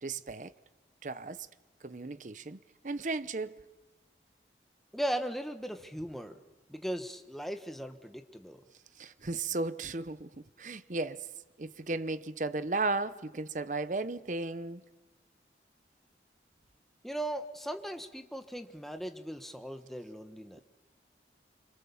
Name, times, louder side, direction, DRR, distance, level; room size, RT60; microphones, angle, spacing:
voice 1, 0.0-0.5 1.0-1.5 1.8-2.6 2.8-3.6 9.0-11.3 11.6-14.8, right 3 dB, 45° right, 0.8 m, -35 dB
voice 2, 4.9-6.4 6.7-8.6 17.0-20.6, right 1 dB, ahead, 1.3 m, -38 dB
27.5 x 25.5 x 7.1 m
head